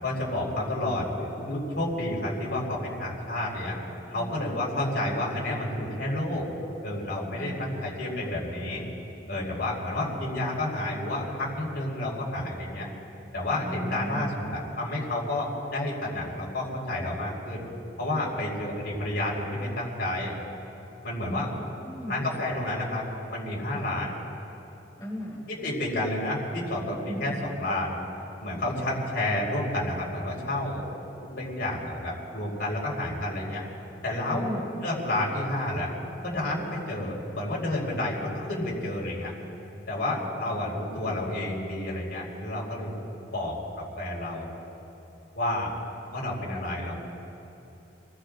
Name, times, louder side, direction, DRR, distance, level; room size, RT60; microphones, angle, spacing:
voice 1, 0.0-3.8 4.1-6.5 6.8-8.8 9.3-12.9 13.3-17.6 18.0-20.3 21.0-21.5 22.1-24.1 25.5-27.3 27.6-28.0 28.4-30.8 31.3-33.6 34.0-35.9 36.2-39.3 39.9-43.0 43.3-44.5 45.3-45.7 46.1-46.9, left 1 dB, 65° left, -3 dB, 4.5 m, -30 dB
voice 2, 7.4-7.9 13.6-14.5 21.3-22.3 23.7-23.9 25.0-25.5 27.1-27.5 34.3-34.8 40.2-41.3, equal, 25° left, -6 dB, 3.3 m, -38 dB
28.0 x 19.5 x 2.6 m, 2.9 s
head